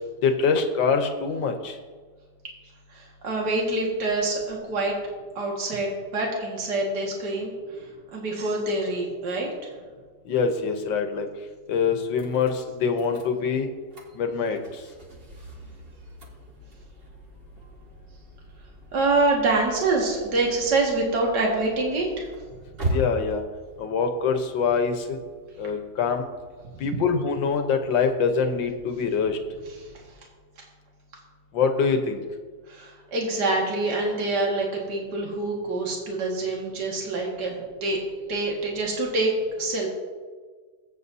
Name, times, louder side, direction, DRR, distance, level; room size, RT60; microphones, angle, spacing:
voice 1, 0.2-1.8 10.3-11.3 11.7-13.7 14.2-14.8 22.9-23.4 23.8-25.2 25.6-26.3 26.8-29.4 31.5-32.2, left 5 dB, 85° left, 6 dB, 1.7 m, -24 dB
voice 2, 2.9-4.9 5.4-7.5 8.1-9.5 18.9-22.3 32.7-38.0 38.3-39.3 39.6-39.9, right 2 dB, 60° right, -1 dB, 2.5 m, -26 dB
sound 1, 12.1-30.1, right 1 dB, 35° right, 1.6 m, -40 dB
22.0 x 8.3 x 2.8 m, 1.5 s
omnidirectional pair, 2.0 m